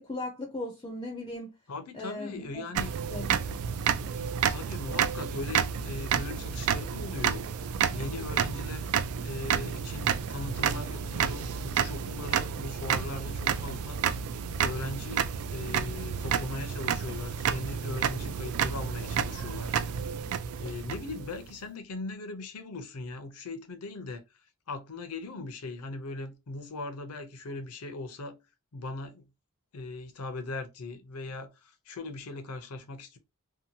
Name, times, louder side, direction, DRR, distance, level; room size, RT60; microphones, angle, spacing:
voice 1, 0.0-1.5 1.9-2.5 3.1-3.4, left 2 dB, 20° left, 0.4 m, -37 dB
voice 2, 1.7-2.9 4.3-8.9 9.2-14.2 14.5-19.8 20.6-24.2 24.7-28.4 28.7-29.3 29.7-33.2, left 3 dB, 80° left, 0.6 m, -39 dB
sound 1, 2.7-21.5, right 8 dB, 70° right, 0.3 m, -30 dB
2.8 x 2.2 x 2.7 m
head